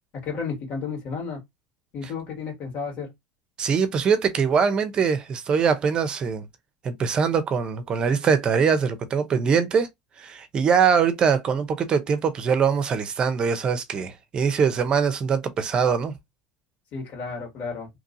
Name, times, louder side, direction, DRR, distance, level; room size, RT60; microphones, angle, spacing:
voice 1, 0.1-1.4 1.9-3.1 16.9-17.9, left 5 dB, 50° left, 1.9 m, -32 dB
voice 2, 3.6-6.5 6.8-9.9 10.2-16.2, right 6 dB, 30° right, 0.6 m, -22 dB
2.9 x 2.6 x 2.6 m
supercardioid pair, 120°, 3 cm